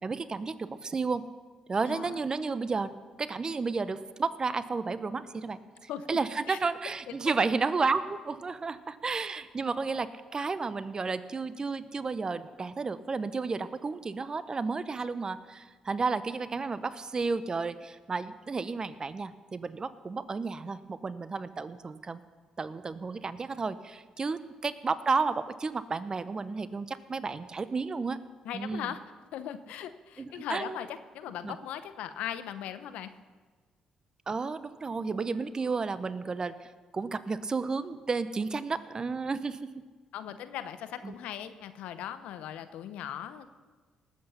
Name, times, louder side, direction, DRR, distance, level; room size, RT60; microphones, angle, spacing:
voice 1, 0.0-1.2 1.7-5.6 6.1-22.2 22.6-28.2 28.5-28.9 30.2-30.8 31.4-31.6 34.3-39.8 41.0-41.1, right 4 dB, 35° right, 14 dB, 0.8 m, -32 dB
voice 2, 1.9-2.2 5.9-6.2 6.5-6.6 7.1-7.2 28.4-29.0 29.3-33.1 40.1-43.5, left 10 dB, 70° left, 11 dB, 0.8 m, -39 dB
19.0 x 8.3 x 5.7 m, 1.4 s
hypercardioid pair, 50°, 2 cm